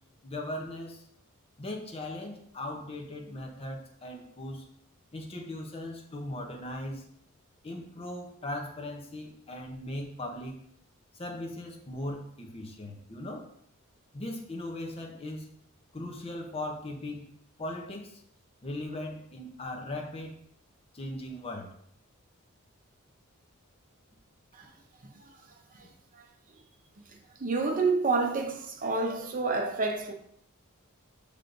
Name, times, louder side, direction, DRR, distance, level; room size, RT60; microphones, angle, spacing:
voice 1, 0.2-1.1 1.6-4.6 5.1-7.0 7.6-10.6 11.1-13.5 14.1-15.5 15.9-17.3 17.6-18.2 18.6-20.4 20.9-21.8, left 1 dB, 25° left, 0.7 m, -38 dB
voice 2, 27.1-30.1, right 3 dB, 40° right, 0.6 m, -29 dB
6.1 x 3.4 x 2.6 m
head